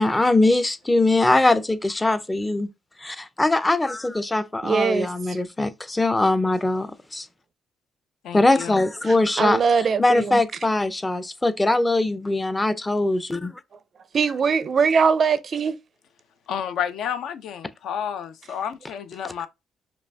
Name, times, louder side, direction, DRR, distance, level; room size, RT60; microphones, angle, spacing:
voice 1, 0.0-2.7 3.0-7.3 8.3-9.6 10.0-13.6, left 2 dB, 15° left, 0.4 m, -21 dB
voice 2, 4.6-5.4 9.1-10.4 14.1-15.8, right 5 dB, 40° right, 0.4 m, -22 dB
voice 3, 8.2-8.8 16.5-19.5, left 8 dB, 75° left, 0.5 m, -30 dB
5.0 x 2.3 x 3.4 m
cardioid pair, 135°, 0 cm